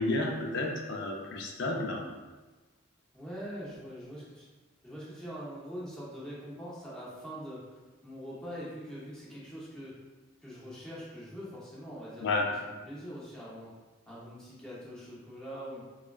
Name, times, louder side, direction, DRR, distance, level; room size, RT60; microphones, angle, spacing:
voice 1, 0.0-2.0 12.2-12.4, left 2 dB, 55° left, 0 dB, 0.4 m, -31 dB
voice 2, 3.1-4.5 4.8-10.0 10.4-12.6 12.9-13.8 14.1-15.8, equal, 5° left, -8 dB, 0.6 m, -43 dB
3.2 x 2.3 x 2.2 m, 1.2 s
head